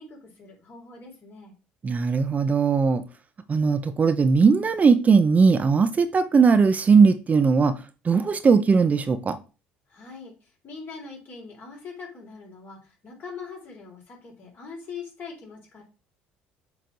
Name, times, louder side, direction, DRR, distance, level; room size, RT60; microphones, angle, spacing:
voice 1, 0.0-1.5 9.9-15.8, left 5 dB, 45° left, 3.6 m, -42 dB
voice 2, 1.8-3.0 3.5-7.8 8.0-9.4, right 5 dB, 30° right, 0.7 m, -19 dB
7.8 x 3.3 x 3.9 m
hypercardioid pair, 70°, 5 cm